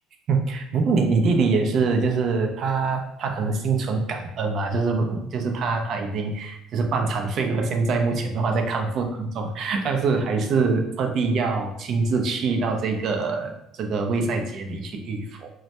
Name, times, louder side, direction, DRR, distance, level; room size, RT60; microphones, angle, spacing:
voice 1, 0.3-15.5, right 4 dB, 55° right, 4 dB, 0.4 m, -24 dB
2.2 x 2.1 x 2.8 m, 0.78 s
supercardioid pair, 90°, 0 cm